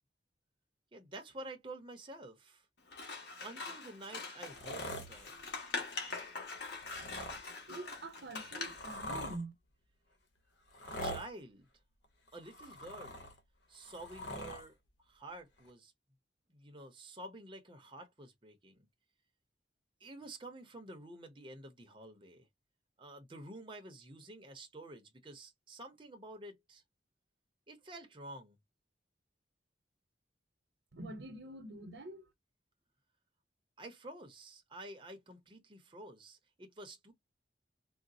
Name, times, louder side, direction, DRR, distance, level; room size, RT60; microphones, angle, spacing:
voice 1, 0.9-2.7 3.4-5.3 10.9-11.7 12.3-13.3 13.7-14.8 15.1-15.9 16.5-18.9 20.0-22.5 23.0-26.8 27.7-28.6 33.8-37.1, right 1 dB, 30° right, 0.7 m, -50 dB
Scissors, 2.9-9.0, left 4 dB, 65° left, 1.4 m, -43 dB
sound 1, 4.4-5.5 6.7-7.4 8.2-9.4 10.7-11.3 12.3-13.4 13.7-14.7 15.7-15.8, equal, 90° left, 1.0 m, -43 dB
voice 2, 7.6-9.5 30.9-32.3, right 2 dB, 80° right, 0.8 m, -46 dB
3.9 x 2.0 x 2.5 m
head